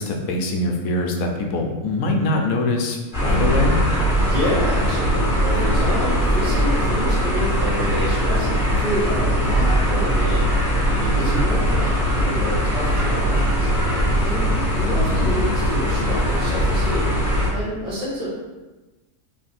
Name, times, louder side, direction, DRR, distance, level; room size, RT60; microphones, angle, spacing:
voice 1, 0.0-3.8 14.9-15.1, left 2 dB, 80° left, 2 dB, 1.0 m, -23 dB
sound 1, 3.1-17.5, equal, 30° left, 1.4 m, -20 dB
voice 2, 4.2-13.7 14.2-17.1 17.5-18.3, equal, 35° right, -9 dB, 1.2 m, -28 dB
3.5 x 2.5 x 4.0 m, 1.2 s
omnidirectional pair, 1.5 m